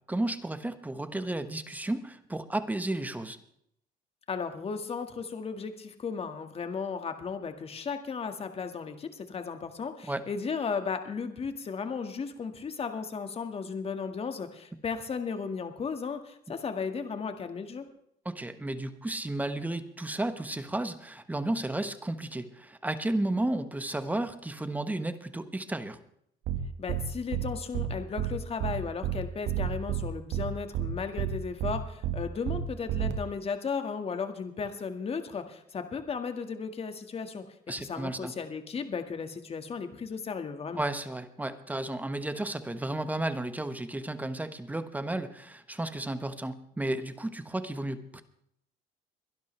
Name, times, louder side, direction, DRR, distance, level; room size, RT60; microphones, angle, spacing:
voice 1, 0.1-3.4 10.1-10.2 18.2-26.0 37.7-38.3 40.7-48.2, right 1 dB, 10° right, 10 dB, 1.2 m, -33 dB
voice 2, 4.3-17.8 26.8-37.5 37.8-40.8, left 5 dB, 35° left, 7 dB, 1.9 m, -35 dB
sound 1, 26.5-26.6 26.9-27.0 27.3-27.5 27.7-27.9 28.2-28.3 28.6-28.7 29.0-29.2 29.5-30.0 30.3-30.5 30.7-30.9 31.2-31.3 31.6-31.7 32.0-32.2 32.5-32.6 32.9-33.1, right 12 dB, 80° right, 1.7 m, -29 dB
22.5 x 12.0 x 3.4 m, 0.72 s
cardioid pair, 110°, 17 cm